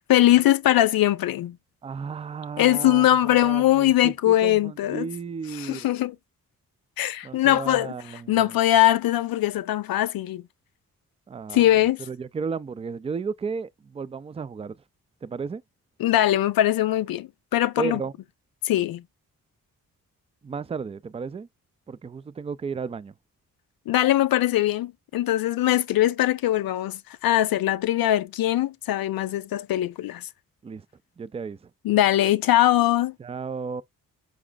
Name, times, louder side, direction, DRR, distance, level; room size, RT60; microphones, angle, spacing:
voice 1, 0.1-1.6 2.6-5.1 5.6-6.2 7.0-7.9 8.3-10.4 11.5-12.0 16.0-18.0 18.6-19.0 23.9-30.3 31.8-33.1, left 13 dB, 85° left, 0.5 m, -21 dB
voice 2, 1.8-5.9 7.2-8.5 11.3-14.8 15.2-15.6 17.8-18.1 20.4-21.5 21.9-23.1 30.6-30.9 31.2-31.7 33.2-33.8, right 5 dB, 20° right, 0.3 m, -34 dB
4.9 x 4.9 x 2.2 m
cardioid pair, 65°, 34 cm